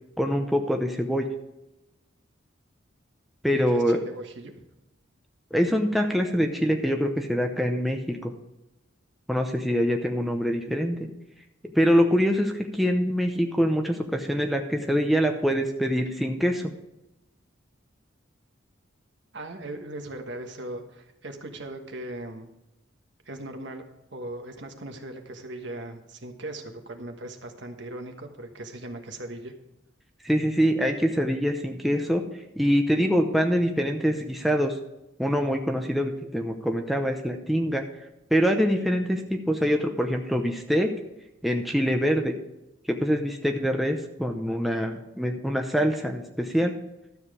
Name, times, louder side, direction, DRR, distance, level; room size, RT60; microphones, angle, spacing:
voice 1, 0.2-1.3 3.4-4.0 5.5-8.3 9.3-11.1 11.7-16.7 30.2-32.2 32.6-34.8 35.2-37.8 38.3-40.9 41.4-42.4 42.9-46.7, equal, ahead, 3 dB, 0.7 m, -24 dB
voice 2, 3.5-4.5 19.3-22.5 23.2-23.8 24.1-29.5, right 1 dB, 60° right, 5 dB, 1.3 m, -39 dB
12.5 x 7.2 x 4.9 m, 0.93 s
head